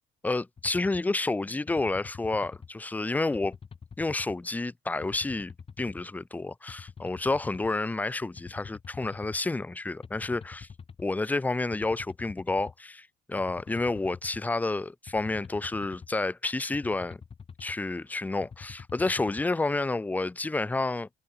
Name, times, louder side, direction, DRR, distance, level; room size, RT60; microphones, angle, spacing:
voice 1, 0.2-3.6 4.0-10.7 11.0-17.2 17.6-21.1, left 2 dB, 10° left, 0.5 m, -30 dB
sound 1, 0.6-1.0 1.7-2.7 3.3-4.4 5.0-6.0 6.7-7.7 8.4-9.4 10.0-11.1 11.7-12.7 13.4-14.4 15.1-16.1 16.7-17.8 18.4-19.4, left 6 dB, 35° left, 5.8 m, -46 dB
cardioid pair, 110°, 17 cm